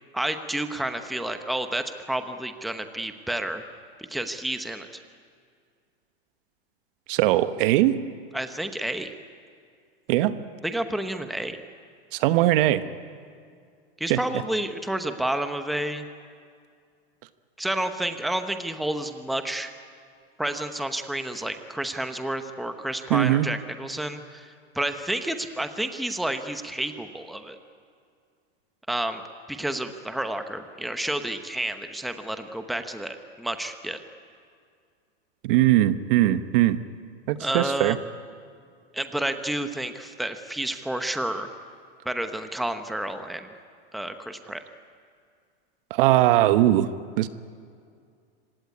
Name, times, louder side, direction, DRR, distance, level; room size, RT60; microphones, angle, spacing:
voice 1, 0.1-3.6 4.1-4.9 8.3-9.1 10.6-11.6 14.0-16.1 17.6-19.7 20.4-27.6 28.9-29.2 29.5-34.0 37.4-38.0 38.9-41.5 42.0-43.5 43.9-44.6, right 1 dB, ahead, 8 dB, 0.9 m, -30 dB
voice 2, 7.1-8.0 10.1-10.3 12.1-12.8 14.1-14.2 23.1-23.5 35.4-36.8 37.3-38.0 45.9-46.9 47.2-47.3, right 14 dB, 55° right, 12 dB, 1.1 m, -20 dB
25.5 x 17.0 x 9.7 m, 2.2 s
supercardioid pair, 135°, 32 cm